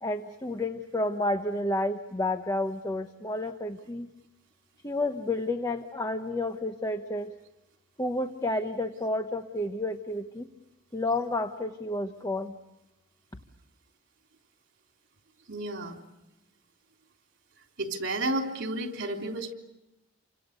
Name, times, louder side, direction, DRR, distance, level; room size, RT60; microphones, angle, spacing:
voice 1, 0.0-4.1 4.8-7.3 8.0-10.5 10.9-12.5, left 2 dB, 20° left, 7 dB, 1.0 m, -30 dB
voice 2, 15.5-16.0 17.8-19.5, right 2 dB, 60° right, 3 dB, 3.6 m, -31 dB
29.0 x 25.5 x 6.7 m, 0.94 s
head